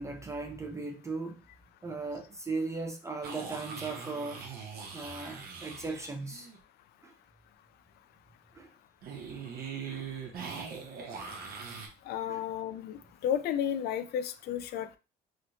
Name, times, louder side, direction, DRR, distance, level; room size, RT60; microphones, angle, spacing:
voice 1, 0.0-1.4 1.8-4.4 4.9-6.5 7.0-7.1 8.6-8.7 9.9-10.1 11.1-11.3 12.3-12.4, right 3 dB, 15° right, 0.5 m, -37 dB
sound 1, 3.2-6.6 9.0-11.9, right 5 dB, 65° right, 1.0 m, -41 dB
voice 2, 12.1-15.0, left 9 dB, 70° left, 0.4 m, -33 dB
3.1 x 3.0 x 2.7 m
cardioid pair, 110°, 17 cm